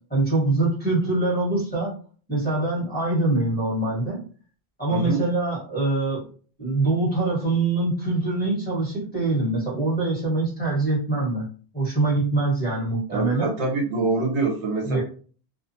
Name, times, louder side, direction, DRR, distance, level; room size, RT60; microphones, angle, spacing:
voice 1, 0.1-1.9 2.3-4.2 4.8-6.2 6.6-11.5 11.7-13.5 14.9-15.0, right 2 dB, 10° left, -8 dB, 1.4 m, -24 dB
voice 2, 4.9-5.2 13.1-15.0, right 3 dB, 75° right, 1 dB, 1.1 m, -25 dB
2.5 x 2.3 x 2.7 m, 0.41 s
omnidirectional pair, 1.2 m